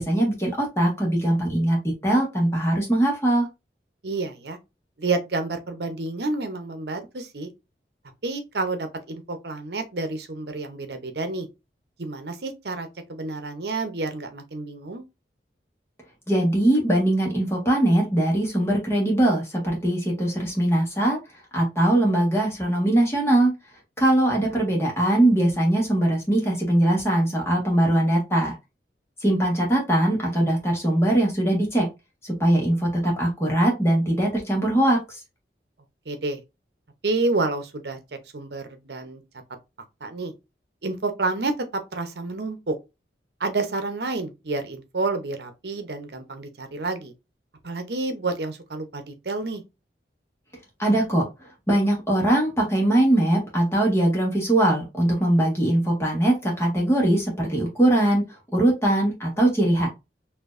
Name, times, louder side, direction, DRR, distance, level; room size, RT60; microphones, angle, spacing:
voice 1, 0.0-3.5 16.3-21.2 21.5-23.5 24.0-28.5 29.2-31.9 32.2-35.0 50.8-51.3 51.7-58.2 58.5-59.9, right 1 dB, 15° left, 1.5 m, -21 dB
voice 2, 4.0-4.6 5.0-7.5 8.2-11.5 12.0-15.0 24.5-24.6 36.1-36.4 37.0-38.0 38.3-39.2 40.0-40.3 40.8-41.5 41.9-42.8 43.4-47.1 47.6-49.6, right 3 dB, 70° right, 0.8 m, -29 dB
4.4 x 2.8 x 2.5 m
head